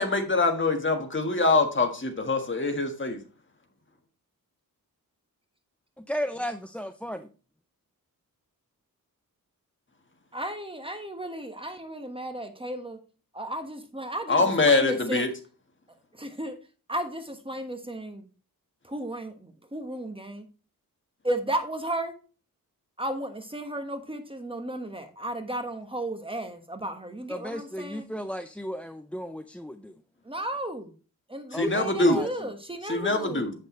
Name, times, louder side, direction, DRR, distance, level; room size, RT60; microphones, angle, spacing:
voice 1, 0.0-3.2 14.3-15.3 31.5-32.2 32.9-33.5, left 3 dB, 35° left, 5 dB, 1.6 m, -24 dB
voice 2, 6.0-7.3 27.3-29.9 31.5-32.5, equal, 5° left, 9 dB, 0.4 m, -35 dB
voice 3, 10.3-13.0 13.3-15.2 16.2-16.6 16.9-18.2 18.9-20.4 21.2-22.1 23.0-28.1 30.3-30.9 31.3-33.5, right 1 dB, 15° right, 6 dB, 1.3 m, -34 dB
8.0 x 6.6 x 3.2 m, 0.35 s
wide cardioid pair, 95°, 35 cm